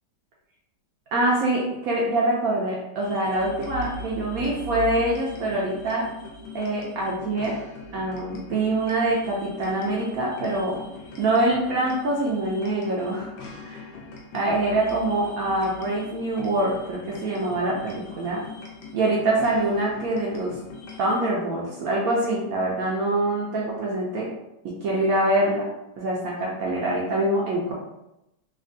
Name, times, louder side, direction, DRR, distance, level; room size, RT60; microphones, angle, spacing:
voice 1, 1.1-6.1 6.5-7.6 7.9-10.8 11.2-13.3 13.6-13.9 14.3-18.5 18.9-20.6 21.0-24.3 24.6-25.7 26.0-27.7, right 2 dB, 70° right, -3 dB, 0.8 m, -25 dB
sound 1, 3.0-21.2, left 2 dB, 90° left, 1.3 m, -40 dB
3.4 x 2.3 x 2.5 m, 0.89 s
omnidirectional pair, 2.0 m